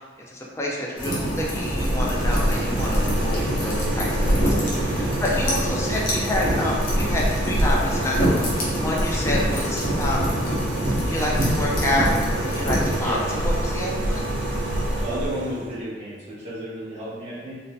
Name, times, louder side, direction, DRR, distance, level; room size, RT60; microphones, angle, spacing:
voice 1, 0.3-8.4 8.8-10.4 11.1-14.2, left 1 dB, 15° left, -3 dB, 0.3 m, -28 dB
sound 1, 1.0-15.0, left 1 dB, 75° left, 0.9 m, -36 dB
sound 2, 1.0-13.0, equal, 50° left, 0.6 m, -27 dB
sound 3, 1.2-15.8, right 1 dB, 80° right, 0.3 m, -26 dB
voice 2, 14.9-17.5, right 1 dB, 40° right, -10 dB, 1.0 m, -32 dB
2.6 x 2.0 x 2.3 m, 1.5 s
head